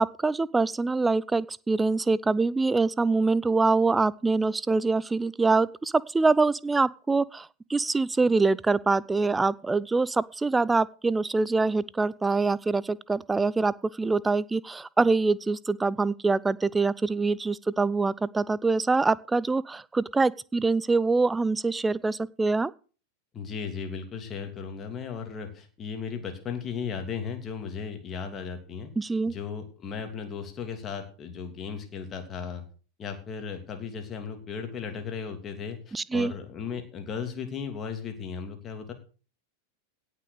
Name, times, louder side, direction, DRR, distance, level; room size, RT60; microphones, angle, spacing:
voice 1, 0.0-22.7 29.0-29.3 35.9-36.3, right 3 dB, 10° right, 22 dB, 0.5 m, -24 dB
voice 2, 23.3-28.9 29.3-32.6 33.0-38.9, left 6 dB, 25° left, 6 dB, 3.0 m, -36 dB
17.0 x 6.3 x 6.5 m, 0.38 s
figure-of-eight pair, 90°, 0 cm